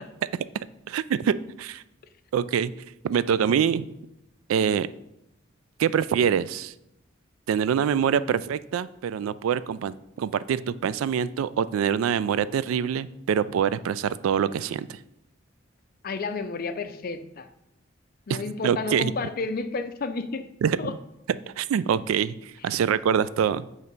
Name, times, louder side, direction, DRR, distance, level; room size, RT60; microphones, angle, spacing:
voice 1, 0.9-1.8 2.3-2.7 3.0-3.9 4.5-4.9 5.8-6.7 7.5-15.0 18.3-18.4 18.6-19.1 20.6-20.8 21.6-22.4 22.6-23.6, right 8 dB, 90° right, 16 dB, 0.3 m, -25 dB
voice 2, 16.0-17.5 18.3-20.5 20.8-20.9, left 4 dB, 45° left, 10 dB, 0.5 m, -31 dB
8.0 x 3.2 x 5.2 m, 0.84 s
head